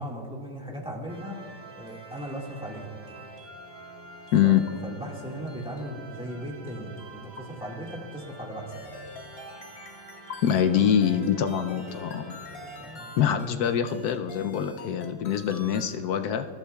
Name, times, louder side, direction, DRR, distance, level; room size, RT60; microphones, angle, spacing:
voice 1, 0.0-1.4 1.7-2.9 4.4-8.8 10.7-10.9 12.8-13.1, equal, 5° right, -1 dB, 1.6 m, -37 dB
sound 1, 1.1-13.3, right 2 dB, 30° right, 1.1 m, -47 dB
voice 2, 4.3-4.6 10.4-12.4 13.2-16.5, left 9 dB, 75° left, 8 dB, 0.9 m, -24 dB
sound 2, 8.7-16.0, left 2 dB, 45° left, 2.0 m, -46 dB
21.5 x 11.5 x 2.3 m, 2.6 s
omnidirectional pair, 2.2 m